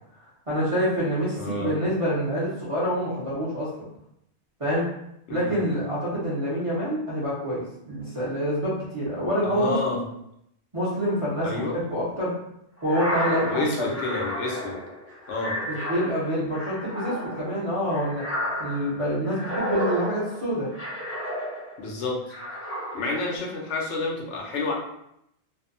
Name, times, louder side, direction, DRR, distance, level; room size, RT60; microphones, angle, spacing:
voice 1, 0.5-3.7 4.6-4.8 5.3-10.0 10.7-12.3 12.8-14.0 15.7-18.2 18.6-20.7, equal, 35° right, -8 dB, 0.6 m, -27 dB
voice 2, 1.3-1.7 5.3-5.6 9.4-10.0 11.4-11.8 13.3-14.8 15.3-15.6 21.8-22.2 22.9-24.7, left 3 dB, 80° left, -1 dB, 0.9 m, -29 dB
sound 1, 12.8-21.9 22.3-23.3, equal, 15° left, 0.5 m, -32 dB
2.6 x 2.1 x 2.5 m, 0.78 s
omnidirectional pair, 1.2 m